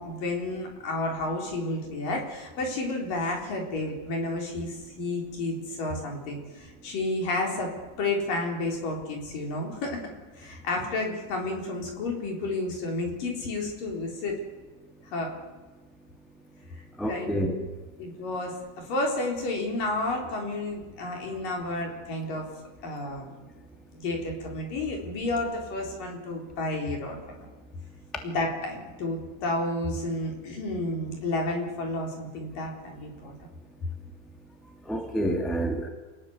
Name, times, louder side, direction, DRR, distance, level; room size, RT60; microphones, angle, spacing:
voice 1, 0.0-7.7 8.0-10.0 10.3-14.4 15.1-15.3 17.1-17.5 18.0-22.5 22.8-23.3 23.9-27.5 28.2-33.3, left 2 dB, 45° left, 1 dB, 5.4 m, -31 dB
voice 2, 17.0-17.6 34.9-35.9, right 1 dB, ahead, 3 dB, 1.1 m, -28 dB
28.5 x 20.0 x 8.1 m, 1.3 s
omnidirectional pair, 5.6 m